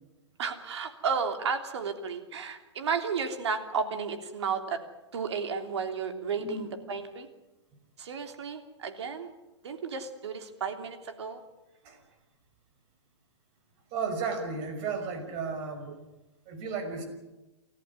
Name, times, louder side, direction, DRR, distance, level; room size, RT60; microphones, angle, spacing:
voice 1, 0.4-4.8 5.1-7.3 8.0-9.3 9.6-11.4, right 5 dB, 75° right, 6 dB, 3.2 m, -33 dB
voice 2, 6.4-6.7 11.8-12.0 13.9-15.9 16.5-17.0, right 5 dB, 40° right, 6 dB, 5.8 m, -34 dB
28.5 x 14.0 x 9.6 m, 1.0 s
hypercardioid pair, 135°, 15 cm